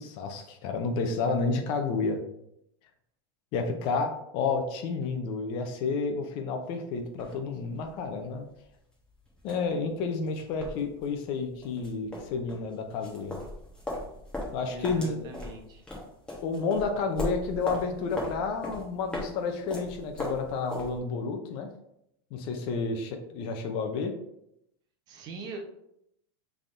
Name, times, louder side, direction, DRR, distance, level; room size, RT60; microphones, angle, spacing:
voice 1, 0.0-2.2 3.5-8.4 9.4-13.4 14.5-15.3 16.4-21.7 22.3-24.1, left 4 dB, 40° left, 5 dB, 0.6 m, -30 dB
sound 1, 6.9-21.0, left 1 dB, 5° left, 1.1 m, -39 dB
voice 2, 14.6-15.8 25.1-25.6, right 2 dB, 30° right, 3 dB, 0.8 m, -41 dB
5.5 x 3.5 x 2.6 m, 0.78 s
supercardioid pair, 150°, 13 cm